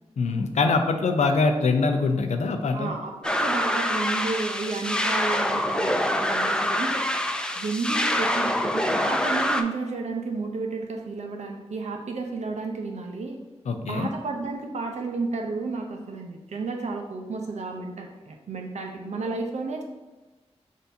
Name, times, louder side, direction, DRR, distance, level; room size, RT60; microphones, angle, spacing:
voice 1, 0.2-2.9 13.7-14.1, left 4 dB, 90° left, 5 dB, 0.5 m, -23 dB
voice 2, 2.7-7.0 7.6-13.4 13.8-19.8, right 3 dB, 90° right, 3 dB, 0.6 m, -32 dB
sound 1, 3.2-9.6, left 1 dB, 5° left, 0.4 m, -25 dB
6.4 x 2.6 x 2.6 m, 1.1 s
cardioid pair, 55°, 11 cm